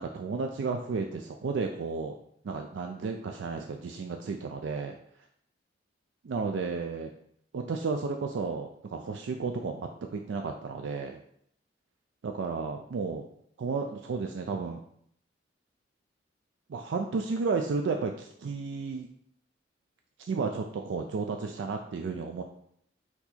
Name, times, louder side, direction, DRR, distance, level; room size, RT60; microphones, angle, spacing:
voice 1, 0.0-2.1 2.4-4.9 6.2-7.1 7.5-11.2 12.2-13.3 13.6-14.8 16.7-19.1 20.2-22.4, right 4 dB, 80° right, 4 dB, 0.4 m, -33 dB
4.5 x 2.8 x 4.1 m, 0.67 s
head